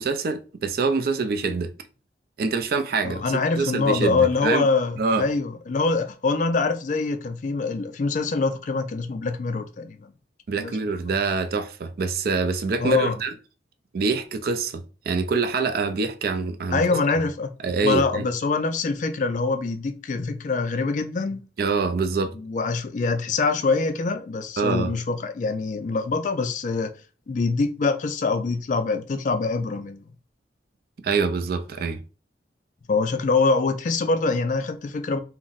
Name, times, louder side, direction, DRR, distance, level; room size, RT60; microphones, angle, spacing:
voice 1, 0.0-1.7 2.4-4.7 5.0-5.3 10.5-13.3 13.9-17.0 17.6-18.3 21.6-22.3 24.6-24.9 31.0-32.0, right 4 dB, 55° right, 0.4 m, -25 dB
voice 2, 3.0-10.1 10.6-10.9 12.8-13.2 16.7-17.5 17.8-21.4 22.3-26.9 27.3-30.1 32.9-35.2, left 4 dB, 45° left, 0.4 m, -24 dB
2.5 x 2.1 x 3.8 m
head